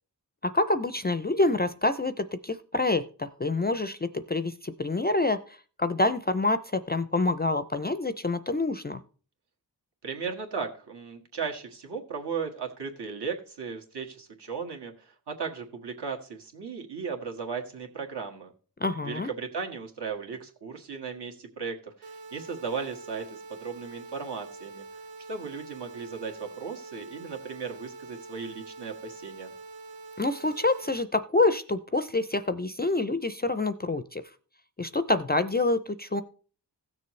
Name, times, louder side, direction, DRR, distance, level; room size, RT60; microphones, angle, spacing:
voice 1, 0.4-9.0 18.8-19.3 30.2-34.2 34.8-36.2, left 2 dB, 25° left, 12 dB, 0.4 m, -27 dB
voice 2, 10.0-18.5 19.0-24.9 25.3-29.5, right 5 dB, 65° right, 2 dB, 1.7 m, -36 dB
sound 1, 22.0-31.0, right 3 dB, 90° right, 0.8 m, -45 dB
16.0 x 6.8 x 3.1 m, 0.40 s
wide cardioid pair, 125°, 43 cm